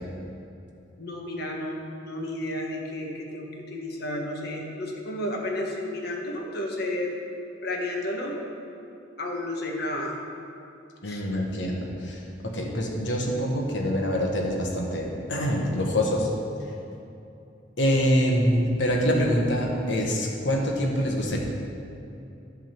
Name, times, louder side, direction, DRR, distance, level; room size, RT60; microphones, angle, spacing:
voice 1, 1.0-7.1 7.6-8.3 9.2-10.2 11.1-11.2, left 1 dB, 60° left, 0 dB, 1.3 m, -32 dB
voice 2, 11.0-16.3 17.8-21.4, equal, 75° left, 0 dB, 1.3 m, -25 dB
11.0 x 3.8 x 7.5 m, 2.7 s
head